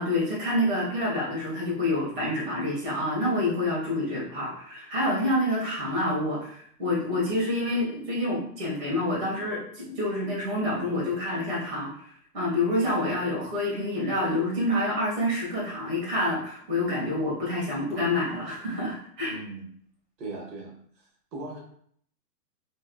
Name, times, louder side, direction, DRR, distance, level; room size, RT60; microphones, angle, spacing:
voice 1, 0.0-11.9 12.3-19.4, left 1 dB, 35° right, -6 dB, 1.5 m, -27 dB
voice 2, 19.3-19.7 20.2-21.6, right 2 dB, 85° right, -2 dB, 1.4 m, -39 dB
3.4 x 3.0 x 2.2 m, 0.62 s
hypercardioid pair, 175°, 49 cm